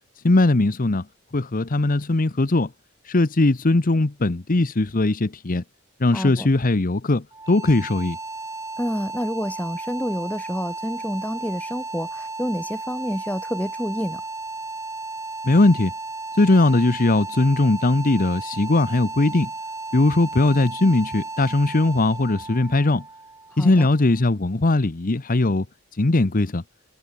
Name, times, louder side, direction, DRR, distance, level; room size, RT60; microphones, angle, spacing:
voice 1, 0.2-1.1 1.3-2.7 3.0-5.6 6.0-8.2 15.4-15.9 16.3-19.5 19.9-23.0 23.6-25.6 25.9-26.6, left 2 dB, 45° left, 0.9 m, -19 dB
voice 2, 6.1-6.5 8.8-14.2 23.6-23.9, equal, 5° left, 6.6 m, -28 dB
sound 1, 7.3-24.2, right 3 dB, 15° right, 4.7 m, -34 dB
head